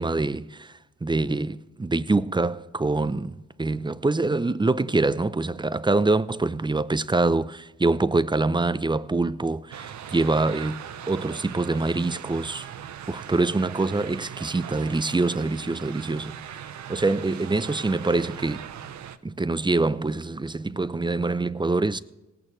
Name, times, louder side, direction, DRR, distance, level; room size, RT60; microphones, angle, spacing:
voice 1, 0.0-10.8 11.1-12.7 13.1-16.3 16.9-18.7 19.2-22.0, right 3 dB, 15° right, 0.6 m, -25 dB
sound 1, 9.7-19.2, right 9 dB, 75° right, 0.8 m, -40 dB
18.5 x 8.8 x 3.2 m
supercardioid pair, 55°, 29 cm